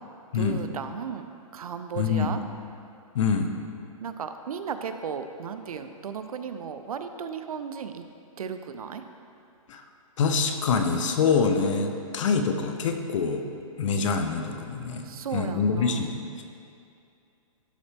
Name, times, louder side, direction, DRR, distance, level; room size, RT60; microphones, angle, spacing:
voice 1, 0.3-1.3 1.5-2.4 4.0-8.0 8.4-9.0 15.0-16.1, right 6 dB, 90° right, 8 dB, 0.5 m, -35 dB
voice 2, 2.0-2.3 3.1-3.5 9.7-9.8 10.2-13.4 13.8-16.4, left 5 dB, 60° left, 6 dB, 0.7 m, -25 dB
11.5 x 4.2 x 3.4 m, 2.5 s
hypercardioid pair, 150°, 18 cm